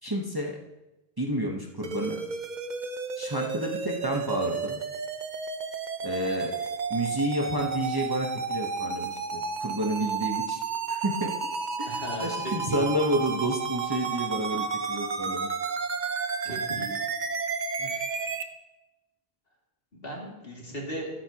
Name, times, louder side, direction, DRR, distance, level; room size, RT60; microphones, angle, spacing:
voice 1, 0.0-0.6 1.2-2.2 3.2-4.8 6.0-6.5 6.9-10.6 10.9-11.3 11.8-15.5 17.8-18.0, right 1 dB, 20° right, -1 dB, 1.0 m, -30 dB
sound 1, 1.8-18.4, right 5 dB, 50° right, 0.8 m, -32 dB
voice 2, 11.9-12.9 16.4-17.0 18.1-18.2 19.9-21.1, right 1 dB, 65° left, -3 dB, 2.9 m, -36 dB
13.0 x 12.0 x 2.9 m, 0.99 s
omnidirectional pair, 1.1 m